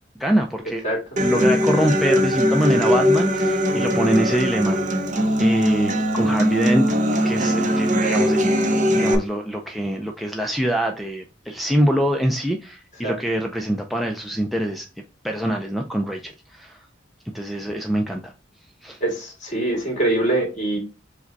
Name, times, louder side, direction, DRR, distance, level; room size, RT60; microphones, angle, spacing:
voice 1, 0.2-0.8 1.2-5.0 5.4-6.9 7.2-8.5 8.9-14.9 15.2-16.8 17.3-18.3 18.8-19.0, right 1 dB, ahead, 0.4 m, -24 dB
Human voice / Acoustic guitar, 1.2-9.1, equal, 40° right, 0.7 m, -20 dB
voice 2, 19.0-20.8, right 2 dB, 40° left, 2.1 m, -23 dB
4.9 x 2.2 x 3.9 m
head